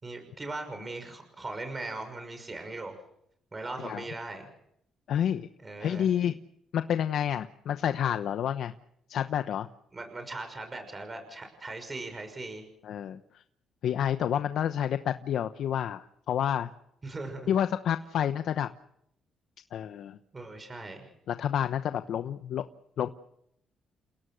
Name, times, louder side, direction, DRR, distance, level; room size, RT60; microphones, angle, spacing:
voice 1, 0.0-3.0 3.5-4.5 5.6-6.1 9.9-12.6 17.0-17.5 20.3-21.1, right 2 dB, 25° right, 7 dB, 6.2 m, -39 dB
voice 2, 5.1-5.5 5.8-6.4 6.7-8.7 9.1-9.7 12.8-13.2 13.8-16.7 17.5-18.7 19.7-20.2 21.3-22.6 23.0-23.1, left 9 dB, 70° left, 9 dB, 1.0 m, -29 dB
30.0 x 17.5 x 6.5 m, 0.74 s
cardioid pair, 90°, 0 cm